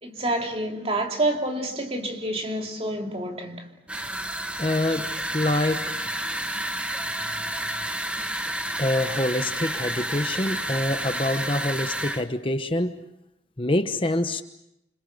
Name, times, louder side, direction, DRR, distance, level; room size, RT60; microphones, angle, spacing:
voice 1, 0.0-3.7, right 1 dB, 30° right, 2.9 m, -28 dB
sound 1, 3.9-12.3, right 1 dB, 5° right, 1.2 m, -30 dB
voice 2, 4.6-6.0 8.8-13.0 13.6-14.4, left 1 dB, 30° left, 1.0 m, -26 dB
28.5 x 27.0 x 6.7 m
head